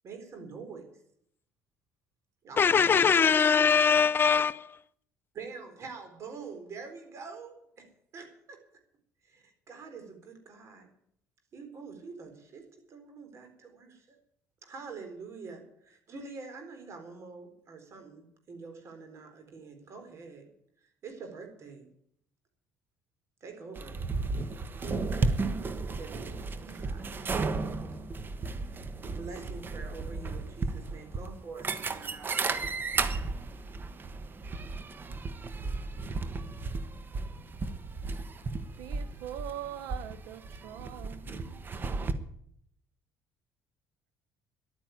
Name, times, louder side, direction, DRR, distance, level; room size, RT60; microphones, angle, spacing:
voice 1, 0.0-0.9 2.4-3.2 5.3-8.6 9.2-10.9 11.5-14.2 14.6-20.5 20.8-21.9 23.4-24.0 24.8-25.2 26.0-27.2 29.1-32.4 32.9-33.1, right 4 dB, 50° right, 4.1 m, -46 dB
voice 2, 2.6-4.7, left 6 dB, 35° left, 0.6 m, -22 dB
sound 1, 23.8-42.1, right 3 dB, 30° right, 1.3 m, -34 dB
voice 3, 38.8-41.7, right 11 dB, 80° right, 1.0 m, -43 dB
11.5 x 9.5 x 9.3 m
cardioid pair, 100°, 6 cm